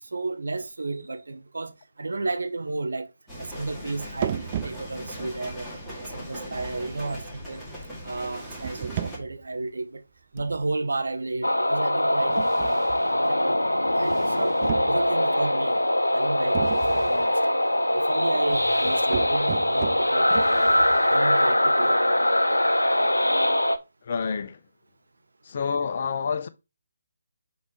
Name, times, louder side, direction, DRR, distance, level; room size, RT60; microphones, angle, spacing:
voice 1, 0.0-3.1 3.4-5.7 6.0-7.6 8.0-10.0 10.3-12.9 13.3-15.8 16.1-17.4 17.9-20.8 21.1-22.0, right 3 dB, 70° right, 0.7 m, -32 dB
sound 1, 3.3-9.2, equal, ahead, 2.0 m, -39 dB
sound 2, 4.2-5.2 6.4-7.6 8.3-9.5 10.4-10.8 12.3-13.2 13.9-15.4 16.5-17.3 18.5-21.3, right 11 dB, 30° right, 0.3 m, -36 dB
sound 3, 11.4-23.8, left 1 dB, 90° left, 0.6 m, -22 dB
voice 2, 24.0-24.6 25.4-26.5, left 5 dB, 45° left, 0.6 m, -28 dB
5.4 x 3.9 x 4.7 m
figure-of-eight pair, 150°, 0 cm